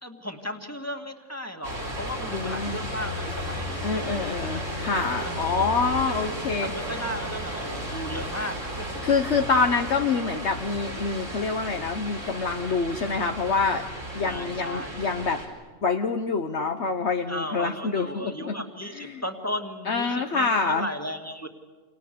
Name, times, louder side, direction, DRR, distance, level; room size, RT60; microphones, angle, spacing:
voice 1, 0.0-4.5 5.2-6.0 6.6-8.9 14.2-15.1 17.3-21.5, equal, 10° left, 4 dB, 2.1 m, -35 dB
sound 1, 1.6-15.5, equal, 80° right, 5.3 m, -34 dB
voice 2, 2.3-2.8 3.8-6.7 9.0-13.9 14.1-15.4 15.8-18.6 18.9-19.2 19.9-20.9, left 4 dB, 65° left, 5 dB, 1.4 m, -26 dB
29.5 x 27.5 x 6.9 m, 1.4 s
omnidirectional pair, 1.3 m